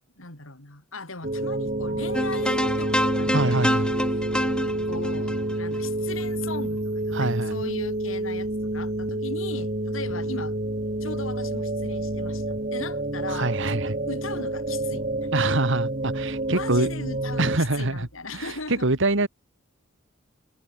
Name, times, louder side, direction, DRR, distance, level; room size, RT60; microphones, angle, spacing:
voice 1, 0.2-3.7 4.1-4.3 4.9-10.6 11.0-15.3 16.5-18.9, left 3 dB, 75° left, 5.2 m, -38 dB
sound 1, 1.2-17.6, right 1 dB, 40° right, 3.8 m, -28 dB
sound 2, 2.1-6.5, equal, 5° left, 2.1 m, -27 dB
voice 2, 3.3-3.9 7.1-7.6 13.3-13.9 15.3-16.9 17.4-18.1 18.3-19.3, right 2 dB, 65° right, 2.1 m, -25 dB
head